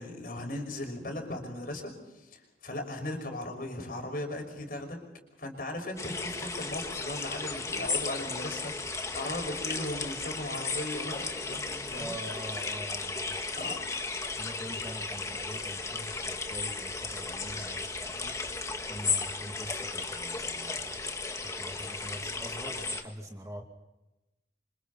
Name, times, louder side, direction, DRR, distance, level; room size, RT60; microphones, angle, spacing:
voice 1, 0.0-5.0 5.4-12.1 13.5-13.8, left 1 dB, 55° left, 3 dB, 5.7 m, -37 dB
sound 1, 6.0-23.0, left 4 dB, 15° left, 1.6 m, -35 dB
voice 2, 11.9-13.4 14.4-21.1 21.4-23.6, right 1 dB, 20° right, 2 dB, 2.4 m, -44 dB
28.5 x 26.5 x 4.2 m, 0.99 s
head